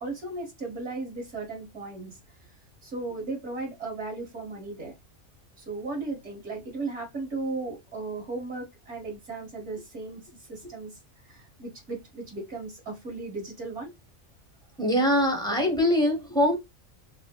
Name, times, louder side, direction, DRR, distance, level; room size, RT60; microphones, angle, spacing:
voice 1, 0.0-2.2 2.8-4.9 5.6-13.9, right 3 dB, 55° right, 1.8 m, -36 dB
voice 2, 14.8-16.6, equal, 5° left, 0.6 m, -23 dB
5.0 x 2.0 x 2.2 m
omnidirectional pair, 1.4 m